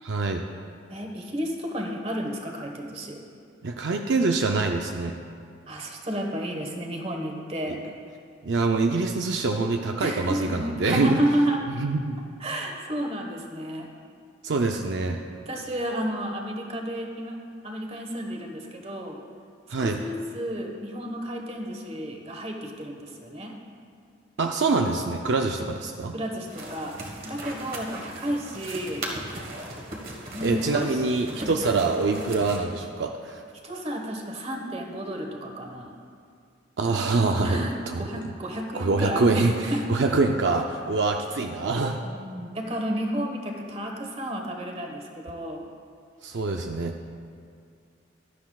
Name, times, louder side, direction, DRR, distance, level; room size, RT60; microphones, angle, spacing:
voice 1, 0.0-0.4 3.6-5.2 8.4-11.2 11.8-12.2 14.4-15.2 19.7-20.0 24.4-26.1 30.4-33.4 36.8-38.0 38.7-42.0 46.2-47.0, right 3 dB, 70° right, 3 dB, 0.5 m, -25 dB
voice 2, 0.9-3.2 5.7-7.8 10.0-11.6 12.4-13.9 15.5-17.4 17.6-19.2 19.8-23.6 25.6-25.7 26.1-27.0 27.2-29.1 29.9-30.0 30.3-31.0 31.3-31.5 33.6-36.0 36.8-39.9 42.0-45.6, equal, 35° right, 1 dB, 1.3 m, -32 dB
sound 1, 26.5-32.6, right 1 dB, 50° right, 1.4 m, -38 dB
16.0 x 12.0 x 2.3 m, 2.3 s
head